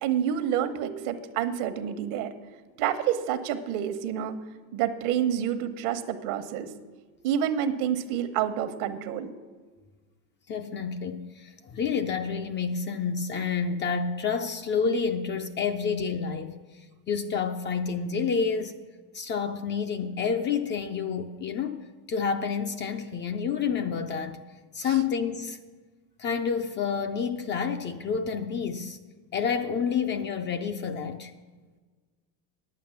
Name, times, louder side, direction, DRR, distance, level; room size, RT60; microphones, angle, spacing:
voice 1, 0.0-2.3 2.8-4.4 4.7-6.7 7.2-9.3 24.8-25.0, right 9 dB, 70° right, 1.1 m, -28 dB
voice 2, 10.5-18.8 19.1-24.4 24.7-25.6 26.2-29.0 29.3-31.3, left 6 dB, 25° left, 0.4 m, -29 dB
9.5 x 8.2 x 7.0 m
supercardioid pair, 130°, 45 cm